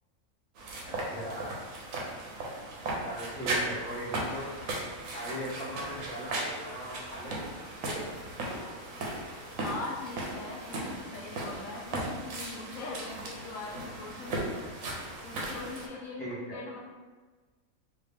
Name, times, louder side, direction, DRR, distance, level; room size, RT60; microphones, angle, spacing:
sound 1, 0.6-15.9, right 1 dB, 75° right, 1.1 m, -37 dB
voice 1, 0.9-1.6 3.0-4.5 5.1-7.5 7.8-8.1 16.2-16.6, right 1 dB, 5° left, -10 dB, 1.0 m, -39 dB
voice 2, 9.2-14.6 15.2-16.8, left 3 dB, 75° left, -3 dB, 1.0 m, -41 dB
3.0 x 2.8 x 3.4 m, 1.3 s
omnidirectional pair, 1.5 m